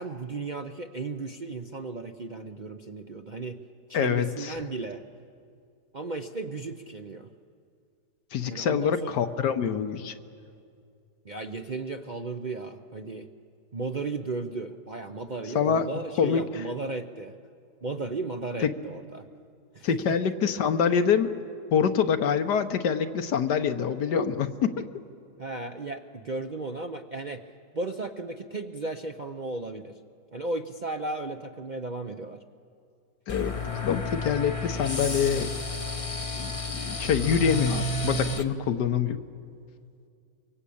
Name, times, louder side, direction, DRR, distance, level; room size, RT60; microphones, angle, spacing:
voice 1, 0.0-3.6 3.9-5.0 5.9-7.3 8.5-9.1 11.2-13.3 13.7-17.3 17.8-19.3 19.7-20.2 25.4-27.4 27.7-30.0 30.3-32.4, right 3 dB, 45° right, 4 dB, 0.6 m, -35 dB
voice 2, 3.9-4.5 8.3-10.1 15.5-15.9 16.2-16.6 18.6-18.7 19.8-21.3 21.7-24.8 33.3-33.5 33.8-35.5 36.4-39.2, left 7 dB, 80° left, 8 dB, 1.6 m, -25 dB
sound 1, 33.3-38.4, left 2 dB, 25° left, 0.9 m, -31 dB
24.5 x 23.5 x 8.6 m, 2.4 s
omnidirectional pair, 1.8 m